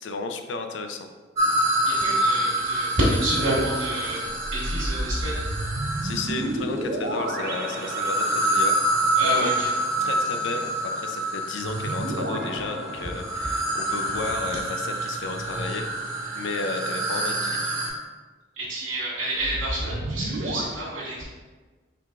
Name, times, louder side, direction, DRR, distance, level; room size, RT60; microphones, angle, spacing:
voice 1, 0.0-1.1 6.0-8.8 9.2-9.5 10.0-17.8, left 3 dB, 70° left, 6 dB, 0.4 m, -33 dB
sound 1, 1.4-6.6 7.4-17.9, right 1 dB, 15° right, 0.8 m, -27 dB
voice 2, 1.8-4.2 4.5-5.4 9.1-9.7 18.6-21.2, right 1 dB, 85° right, -9 dB, 1.3 m, -28 dB
sound 2, 4.2-8.8 11.6-13.7 19.3-20.6, right 1 dB, 55° right, 0.5 m, -31 dB
4.7 x 3.5 x 2.4 m, 1.3 s
head